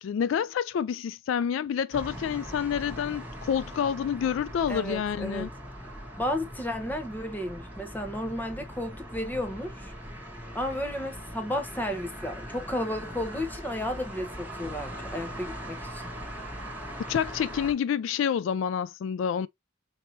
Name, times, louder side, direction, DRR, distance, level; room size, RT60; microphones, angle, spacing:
voice 1, 0.0-5.5 17.1-19.5, left 8 dB, 75° left, 0.3 m, -28 dB
sound 1, 1.9-17.7, equal, 10° right, 1.2 m, -40 dB
voice 2, 4.7-5.5 6.2-9.9 10.5-16.1, left 1 dB, 10° left, 0.9 m, -33 dB
5.2 x 2.8 x 2.7 m
head